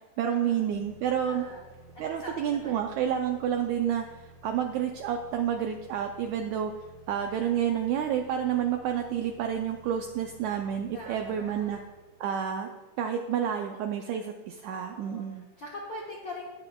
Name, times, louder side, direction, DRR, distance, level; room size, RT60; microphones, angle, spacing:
voice 1, 0.2-1.4 2.0-4.1 4.4-6.7 7.1-11.8 12.2-12.7 13.0-15.5, right 9 dB, 85° right, 5 dB, 1.6 m, -29 dB
sound 1, 0.7-12.4, right 2 dB, 45° right, 1.2 m, -53 dB
voice 2, 1.3-1.6 1.9-2.9 7.2-7.6 10.9-11.8 14.8-16.5, left 1 dB, 70° left, -4 dB, 1.1 m, -43 dB
11.5 x 9.7 x 2.3 m, 1.2 s
omnidirectional pair, 3.8 m